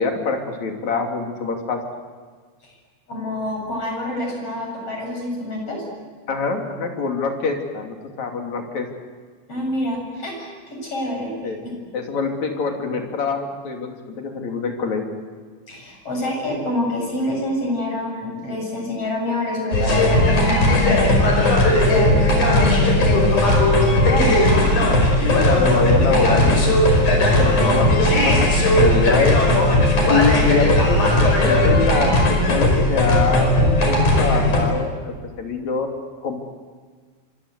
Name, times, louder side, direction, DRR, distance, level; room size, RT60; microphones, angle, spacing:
voice 1, 0.0-1.8 6.3-8.9 11.4-11.6 11.9-15.1 25.4-26.8 27.4-29.4 30.1-33.5 33.8-35.9 36.2-36.4, left 4 dB, 70° left, 3 dB, 4.3 m, -24 dB
voice 2, 3.1-5.8 9.5-11.7 15.7-23.3 23.9-24.7, left 1 dB, 50° left, 1 dB, 8.4 m, -27 dB
sound 1, 19.7-34.6, left 1 dB, 90° left, 6.7 m, -17 dB
26.0 x 25.5 x 8.3 m, 1.5 s
omnidirectional pair, 3.4 m